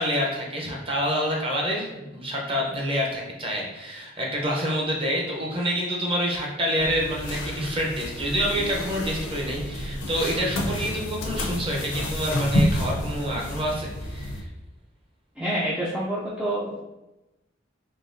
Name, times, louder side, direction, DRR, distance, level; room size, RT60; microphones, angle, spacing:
voice 1, 0.0-14.4, equal, 25° right, -2 dB, 0.7 m, -27 dB
sound 1, 6.8-14.4, left 1 dB, 70° left, 0.6 m, -29 dB
voice 2, 15.4-16.8, right 1 dB, 5° right, -7 dB, 0.3 m, -27 dB
3.8 x 3.1 x 2.6 m, 1.0 s
head